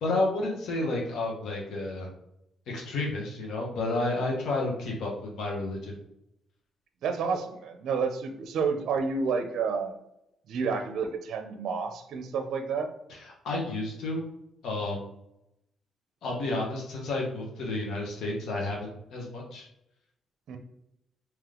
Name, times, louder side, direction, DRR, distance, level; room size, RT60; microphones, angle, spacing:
voice 1, 0.0-2.1 2.7-5.9 13.1-14.2 14.6-15.0 16.2-19.6, left 2 dB, 75° left, -2 dB, 1.0 m, -31 dB
voice 2, 7.0-9.9 10.5-12.9 20.5-20.6, right 5 dB, 70° right, 6 dB, 0.5 m, -30 dB
3.3 x 3.0 x 3.7 m, 0.82 s
cardioid pair, 90°, 0 cm